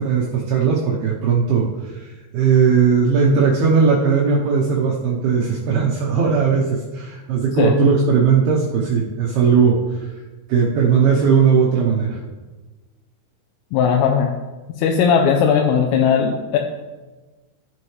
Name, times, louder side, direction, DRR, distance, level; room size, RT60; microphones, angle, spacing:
voice 1, 0.0-10.1 10.5-12.2, right 6 dB, 80° right, -4 dB, 2.2 m, -18 dB
voice 2, 13.7-14.3 14.8-16.6, left 7 dB, 85° left, 2 dB, 3.3 m, -17 dB
13.5 x 7.6 x 3.2 m, 1.2 s
omnidirectional pair, 5.8 m